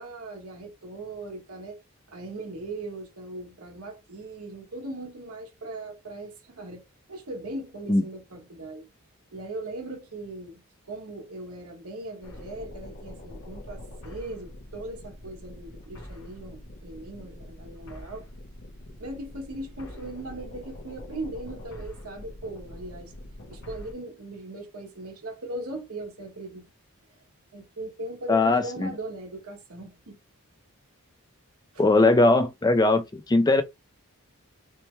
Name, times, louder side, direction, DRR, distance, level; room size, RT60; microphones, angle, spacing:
voice 1, 0.0-1.8 2.1-8.8 9.3-10.6 10.9-18.3 19.0-23.1 23.5-26.6 27.5-30.2 31.7-31.8, right 2 dB, 80° right, 1.4 m, -39 dB
sound 1, 12.2-23.9, left 1 dB, 55° left, 1.2 m, -44 dB
voice 2, 28.3-28.9 31.8-33.6, left 2 dB, 15° left, 0.3 m, -20 dB
5.4 x 2.2 x 3.2 m
head